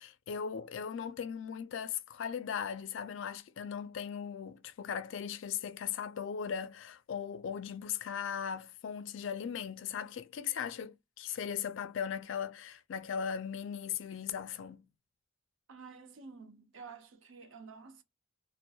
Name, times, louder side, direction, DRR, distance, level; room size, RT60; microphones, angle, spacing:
voice 1, 0.0-14.9, left 7 dB, 65° left, 0.3 m, -38 dB
voice 2, 15.7-18.0, right 5 dB, 75° right, 0.6 m, -50 dB
2.2 x 2.1 x 2.6 m
head